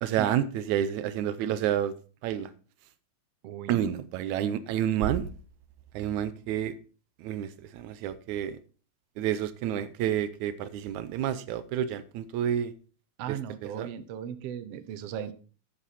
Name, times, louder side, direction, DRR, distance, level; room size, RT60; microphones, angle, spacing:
voice 1, 0.0-1.9 2.2-2.5 3.7-5.3 5.9-6.7 7.2-7.5 7.7-8.6 9.2-12.7 13.3-13.4 13.6-13.9, right 10 dB, 90° right, 14 dB, 2.1 m, -29 dB
voice 2, 3.4-3.9 13.2-15.3, right 9 dB, 65° right, 11 dB, 1.8 m, -37 dB
9.9 x 9.7 x 4.2 m, 0.37 s
omnidirectional pair, 3.3 m